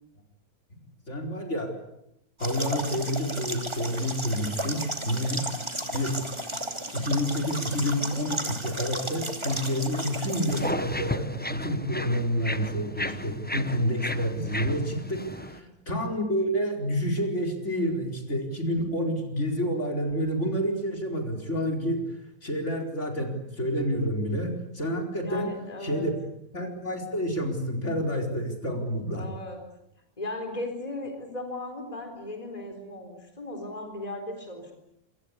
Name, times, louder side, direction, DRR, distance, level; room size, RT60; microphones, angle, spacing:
voice 1, 1.1-1.7 2.4-5.4 5.9-6.1 6.9-22.2 22.4-25.5 25.8-26.1 26.5-29.3, equal, 50° left, 2 dB, 4.8 m, -29 dB
sound 1, 2.4-10.7, right 1 dB, 20° right, 2.7 m, -34 dB
sound 2, 10.5-15.6, left 1 dB, 10° left, 0.9 m, -34 dB
voice 2, 25.2-26.1 29.1-29.7 30.2-34.7, left 2 dB, 25° left, 5 dB, 4.2 m, -36 dB
27.0 x 24.5 x 8.3 m, 0.80 s
omnidirectional pair, 1.6 m